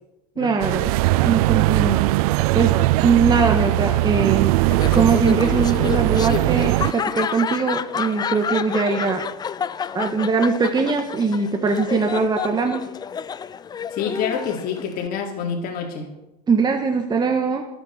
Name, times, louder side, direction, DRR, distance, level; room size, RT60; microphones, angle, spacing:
voice 1, 0.4-0.9 1.2-2.0 2.5-4.6 4.9-9.2 9.9-12.8 16.5-17.6, right 4 dB, 20° right, 4 dB, 1.7 m, -21 dB
sound 1, 0.6-6.9, right 19 dB, 60° right, 0.4 m, -20 dB
Laughter, 4.7-15.1, left 7 dB, 20° left, 0.5 m, -29 dB
voice 2, 13.9-16.1, left 7 dB, 45° left, 1 dB, 3.8 m, -27 dB
26.5 x 9.3 x 4.6 m, 0.96 s
hypercardioid pair, 100°, 21 cm